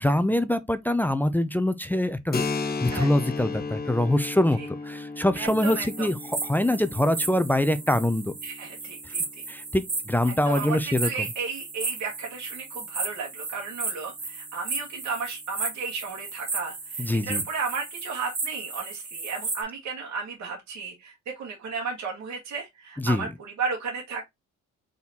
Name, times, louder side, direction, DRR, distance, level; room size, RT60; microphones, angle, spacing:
voice 1, 0.0-2.4 2.8-4.6 4.8-6.2 6.4-8.3 9.5-11.3 17.0-17.4 23.0-23.3, left 1 dB, 5° left, 0.4 m, -24 dB
Keyboard (musical), 2.3-9.7, left 4 dB, 30° left, 0.8 m, -35 dB
sound 1, 5.4-19.6, right 3 dB, 35° right, 1.7 m, -35 dB
voice 2, 5.4-6.1 8.4-9.2 10.4-24.2, right 5 dB, 65° right, 1.5 m, -34 dB
4.0 x 3.8 x 2.8 m
cardioid pair, 90°, 30 cm